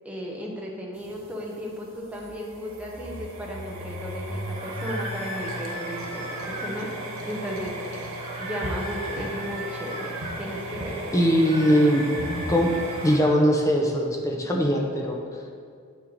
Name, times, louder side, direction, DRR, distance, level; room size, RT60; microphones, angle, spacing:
voice 1, 0.0-6.9 7.2-8.1 8.4-11.3, equal, 5° right, -3 dB, 1.0 m, -35 dB
sound 1, 1.0-13.2, right 1 dB, 70° right, 0.9 m, -36 dB
sound 2, 4.5-6.8 8.2-10.4 11.3-13.4, right 1 dB, 25° right, 1.8 m, -38 dB
voice 2, 11.1-12.0 12.5-12.7 13.0-15.2, equal, 15° left, 0 dB, 0.7 m, -21 dB
7.5 x 5.7 x 4.1 m, 2.2 s
head